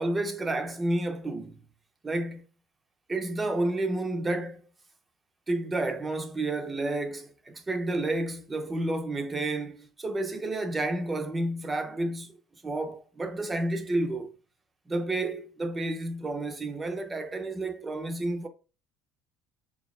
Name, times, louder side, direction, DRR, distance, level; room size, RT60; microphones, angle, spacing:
voice 1, 0.0-1.6 2.0-2.4 3.1-4.6 5.5-12.4 12.6-14.3 14.9-18.5, right 2 dB, 15° right, 0.5 m, -30 dB
6.6 x 2.4 x 2.3 m
cardioid pair, 155°, 0 cm